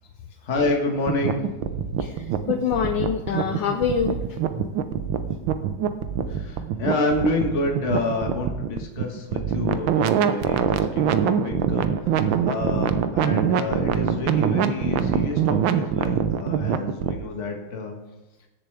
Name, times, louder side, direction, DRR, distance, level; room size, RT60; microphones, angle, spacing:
voice 1, 0.4-1.9 6.3-17.9, left 2 dB, 40° left, 2 dB, 1.6 m, -28 dB
sound 1, 1.0-17.2, right 8 dB, 75° right, 1.4 m, -24 dB
voice 2, 2.0-4.2, left 7 dB, 75° left, 6 dB, 1.3 m, -25 dB
20.5 x 7.0 x 3.4 m, 1.0 s
omnidirectional pair, 2.3 m